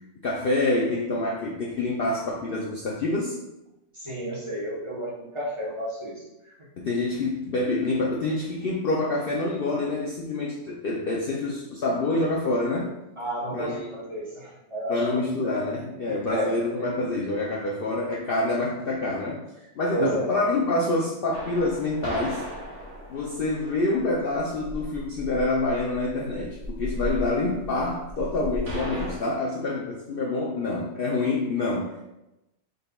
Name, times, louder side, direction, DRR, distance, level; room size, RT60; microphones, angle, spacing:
voice 1, 0.2-3.4 6.8-12.9 13.5-13.9 14.9-22.5 23.1-32.1, left 2 dB, 60° left, -3 dB, 0.6 m, -27 dB
voice 2, 3.9-6.5 13.2-15.2 16.1-16.5 19.9-20.2, right 1 dB, 25° right, -7 dB, 1.0 m, -31 dB
sound 1, 21.3-29.2, equal, 60° right, 1.4 m, -36 dB
5.2 x 3.9 x 2.3 m, 0.94 s
omnidirectional pair, 1.4 m